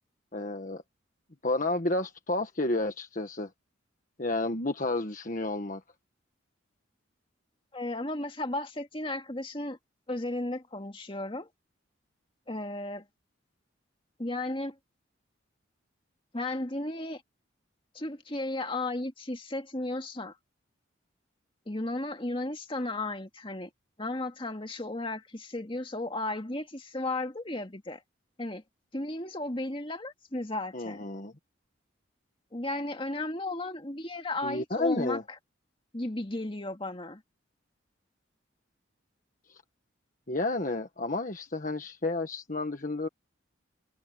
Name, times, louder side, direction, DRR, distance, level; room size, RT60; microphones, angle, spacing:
voice 1, 0.3-0.8 1.4-3.5 4.2-5.8 30.7-31.3 34.4-35.2 39.5-39.6 40.3-43.1, left 2 dB, 40° left, 1.5 m, -31 dB
voice 2, 7.7-9.8 10.1-11.5 12.5-13.1 14.2-14.8 16.3-17.2 17.9-20.4 21.7-23.7 24.0-28.0 28.4-28.6 28.9-31.0 32.5-35.4 35.9-37.2, left 2 dB, 25° left, 2.0 m, -34 dB
head